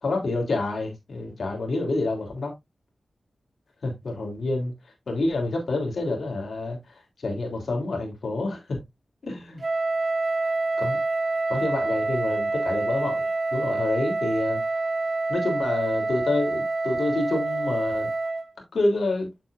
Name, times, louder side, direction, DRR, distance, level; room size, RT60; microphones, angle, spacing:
voice 1, 0.0-2.5 3.8-4.7 5.1-6.8 7.2-8.8 9.2-9.6 10.8-11.0 11.5-13.2 13.5-14.6 15.3-18.1 18.7-19.3, left 2 dB, 75° left, 3.2 m, -27 dB
Wind instrument woodwind instrument, 9.6-18.5, right 3 dB, 50° right, 0.5 m, -27 dB
7.7 x 7.3 x 2.5 m
cardioid pair, 55°, 0 cm